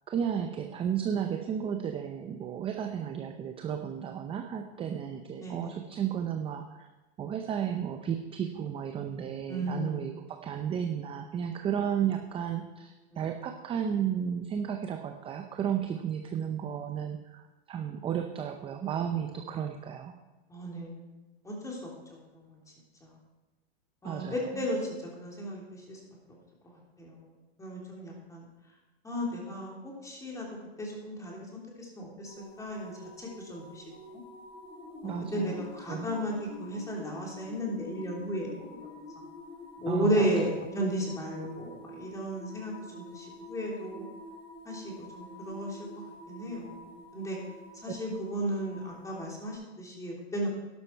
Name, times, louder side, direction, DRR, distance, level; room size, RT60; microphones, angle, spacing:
voice 1, 0.1-6.9 7.2-20.1 24.0-24.6 35.0-35.6 35.9-36.1 39.9-40.3, right 8 dB, 15° right, 5 dB, 0.6 m, -33 dB
voice 2, 5.4-5.8 9.5-10.1 20.5-22.5 23.0-23.1 24.0-24.9 25.2-26.0 27.0-27.3 27.6-28.4 29.0-30.5 30.8-33.8 34.1-34.2 35.0-38.8 39.8-44.1 44.6-45.8 46.3-47.4 47.8-50.5, equal, 10° left, -2 dB, 3.2 m, -34 dB
sound 1, 32.3-49.5, left 2 dB, 35° left, 3.9 m, -47 dB
11.5 x 11.5 x 4.6 m, 1.1 s
hypercardioid pair, 135°, 32 cm